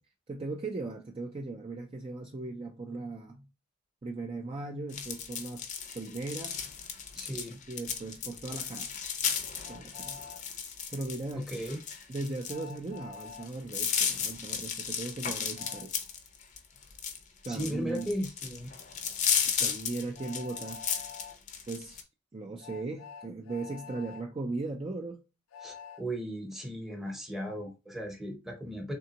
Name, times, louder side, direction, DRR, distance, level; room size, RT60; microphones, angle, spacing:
voice 1, 0.3-3.5 4.0-5.7 5.9-6.5 7.7-9.2 9.7-10.2 10.9-11.5 12.1-16.0 17.4-18.1 19.4-20.8 21.7-22.1 22.3-25.2, right 3 dB, 25° right, 0.4 m, -38 dB
sound 1, 4.9-22.0, left 7 dB, 35° left, 0.6 m, -34 dB
voice 2, 7.1-7.6 11.3-11.8 17.5-18.7 25.6-28.9, equal, ahead, 0.8 m, -36 dB
Train, 9.6-10.4 12.5-13.5 15.5-15.9 17.9-18.1 20.1-21.4 22.6-24.2 25.5-26.0, left 6 dB, 90° left, 0.4 m, -47 dB
3.7 x 3.4 x 2.8 m
head